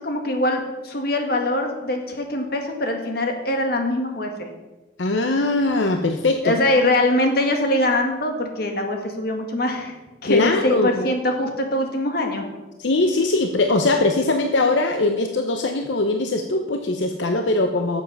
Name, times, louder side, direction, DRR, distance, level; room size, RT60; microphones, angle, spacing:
voice 1, 0.0-4.3 6.4-9.9 10.2-12.4, left 1 dB, 55° left, 4 dB, 1.8 m, -23 dB
voice 2, 5.0-6.6 10.3-11.1 12.8-18.0, left 2 dB, 80° left, 5 dB, 0.8 m, -21 dB
13.0 x 7.4 x 5.5 m, 1.1 s
head